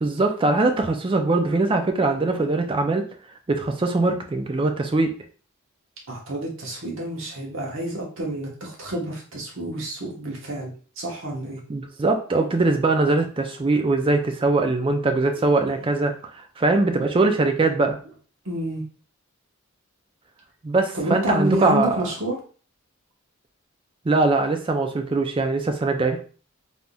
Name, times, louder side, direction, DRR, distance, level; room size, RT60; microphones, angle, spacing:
voice 1, 0.0-3.1 3.5-5.1 11.7-18.0 20.6-22.0 24.0-26.2, right 3 dB, 25° right, 5 dB, 0.4 m, -22 dB
voice 2, 6.1-10.7 11.0-11.6 18.4-18.8 20.9-22.4, right 1 dB, 65° right, -2 dB, 1.0 m, -28 dB
3.4 x 2.6 x 2.2 m, 0.40 s
head